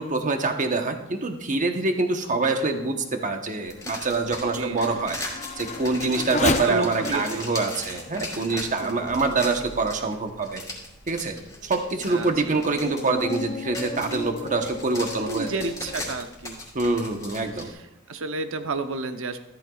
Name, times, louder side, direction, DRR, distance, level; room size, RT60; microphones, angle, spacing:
voice 1, 0.0-5.2 5.6-10.6 11.1-11.4 11.6-15.5 16.7-17.7, right 3 dB, 35° right, 5 dB, 1.1 m, -25 dB
Race car auto racing / Accelerating revving vroom, 2.2-10.1 10.7-10.8 11.4-16.2, left 3 dB, 35° left, 0.6 m, -35 dB
sound 1, 3.6-17.7, left 2 dB, 15° left, 3.4 m, -38 dB
voice 2, 4.5-4.9 6.4-7.5 8.8-9.0 12.1-12.6 15.2-16.6 16.9-19.4, right 3 dB, 65° right, 7 dB, 0.9 m, -32 dB
14.0 x 13.0 x 2.4 m, 0.87 s
head